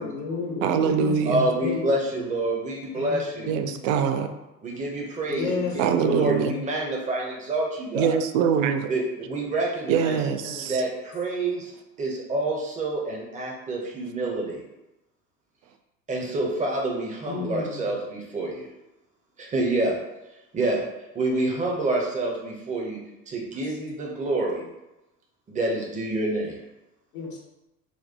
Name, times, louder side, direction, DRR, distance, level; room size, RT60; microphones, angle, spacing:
voice 1, 0.0-1.2 1.6-2.2 2.9-3.8 5.3-6.4 10.2-10.7 17.3-17.9 27.1-27.4, left 4 dB, 65° left, -1 dB, 1.1 m, -32 dB
voice 2, 0.6-1.5 3.5-4.3 5.8-6.6 7.9-8.9 9.9-10.8, right 7 dB, 55° right, 8 dB, 0.5 m, -23 dB
voice 3, 1.2-3.5 4.6-5.6 6.0-8.1 8.9-10.2 10.7-11.7 12.0-14.6 16.1-18.7 19.4-19.9 20.5-20.8 21.1-23.0 23.3-24.7 25.5-26.6, right 2 dB, 15° right, -1 dB, 0.7 m, -27 dB
4.4 x 2.1 x 2.8 m, 0.97 s
figure-of-eight pair, 75°, 50 cm